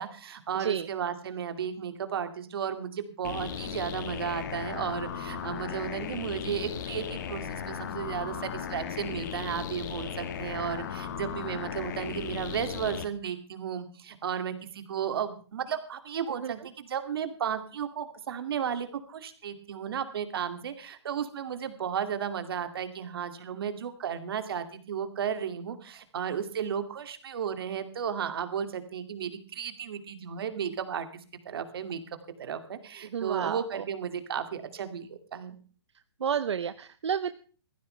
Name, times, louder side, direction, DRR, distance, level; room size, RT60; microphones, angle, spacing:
voice 1, 0.0-31.1 31.5-32.0 32.4-35.6, right 8 dB, 55° right, 9 dB, 2.4 m, -34 dB
sound 1, 3.2-13.1, left 8 dB, 40° left, 1.7 m, -36 dB
voice 2, 33.1-33.8 36.2-37.4, right 7 dB, 80° right, 12 dB, 0.9 m, -30 dB
18.5 x 15.0 x 3.3 m, 0.41 s
hypercardioid pair, 160°, 14 cm